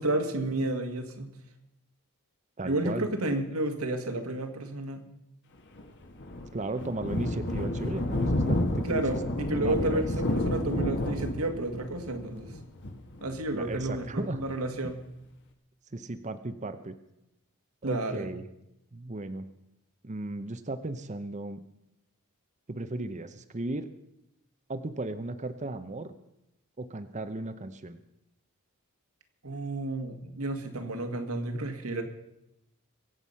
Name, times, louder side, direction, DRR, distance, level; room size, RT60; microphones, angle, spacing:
voice 1, 0.0-1.3 2.6-5.0 8.8-12.5 13.2-15.0 17.8-18.3 29.4-32.0, right 2 dB, 75° right, 6 dB, 1.9 m, -31 dB
voice 2, 2.6-3.1 6.5-9.2 9.6-10.0 13.5-14.4 15.9-17.0 17.8-18.5 18.9-19.5 20.0-21.6 22.7-23.9 24.7-26.1 26.8-28.0, right 2 dB, 30° right, 10 dB, 0.7 m, -35 dB
Thunder, 5.7-14.9, left 1 dB, 55° left, 1.7 m, -31 dB
23.5 x 8.1 x 5.6 m, 0.85 s
head